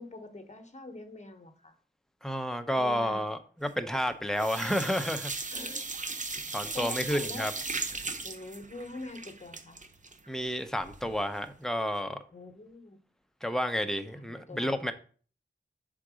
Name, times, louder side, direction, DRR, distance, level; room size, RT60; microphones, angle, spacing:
voice 1, 0.0-1.8 2.8-3.3 5.5-5.8 6.7-7.5 8.2-9.8 12.3-13.0 14.1-14.7, left 2 dB, 35° left, 1.0 m, -44 dB
voice 2, 2.2-5.3 6.5-7.5 10.3-12.2 13.4-14.9, equal, ahead, 0.7 m, -30 dB
sound 1, 3.7-4.1 4.3-11.2 11.5-11.6 12.0-12.1, right 3 dB, 40° right, 0.7 m, -37 dB
5.9 x 3.7 x 4.9 m
wide cardioid pair, 80°, 19 cm